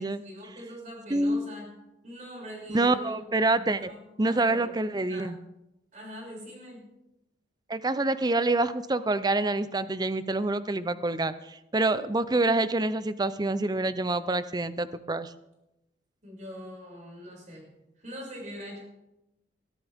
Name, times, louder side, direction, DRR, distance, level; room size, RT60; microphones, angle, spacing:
voice 1, 0.0-1.7 2.0-3.2 3.5-4.0 4.2-4.7 5.1-5.3 5.9-6.9 16.2-17.7 18.0-18.8, equal, 40° right, -2 dB, 6.7 m, -42 dB
voice 2, 1.1-1.4 2.7-3.9 4.2-5.4 7.7-15.3, right 2 dB, 20° right, 13 dB, 0.6 m, -26 dB
22.0 x 13.5 x 3.6 m, 0.91 s
head